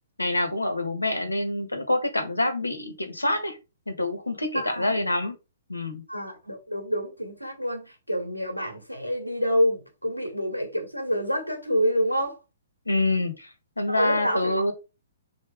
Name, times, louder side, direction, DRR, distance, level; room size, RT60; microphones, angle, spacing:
voice 1, 0.2-3.6 3.9-5.4 5.7-6.0 12.8-13.5 13.8-14.7, left 2 dB, 85° left, 1.6 m, -26 dB
voice 2, 4.5-4.9 6.1-12.4 13.9-14.5, equal, 90° right, 2.6 m, -27 dB
4.6 x 4.5 x 5.0 m
figure-of-eight pair, 120°, 0 cm